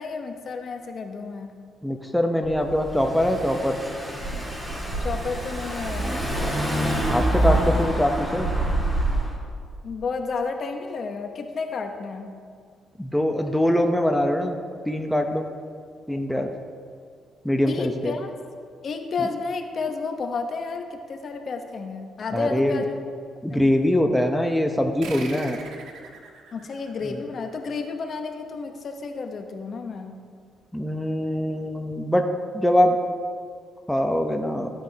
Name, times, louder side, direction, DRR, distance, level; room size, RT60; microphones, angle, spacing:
voice 1, 0.0-1.6 5.0-6.3 9.8-12.3 17.6-18.3 18.8-23.0 23.5-23.7 26.5-30.2, left 4 dB, 50° left, 5 dB, 1.0 m, -31 dB
voice 2, 1.8-3.8 7.1-8.5 13.0-14.6 14.9-15.5 16.1-16.5 17.4-18.1 22.3-22.8 23.4-25.6 30.7-32.2 32.5-33.0 33.9-34.7, left 1 dB, 5° left, 3 dB, 0.8 m, -23 dB
Car / Engine, 2.4-9.4, right 1 dB, 15° right, 2.2 m, -26 dB
sound 1, 25.0-28.1, right 4 dB, 80° right, 1.2 m, -42 dB
14.5 x 9.2 x 2.9 m, 2.1 s
cardioid pair, 90°, 0 cm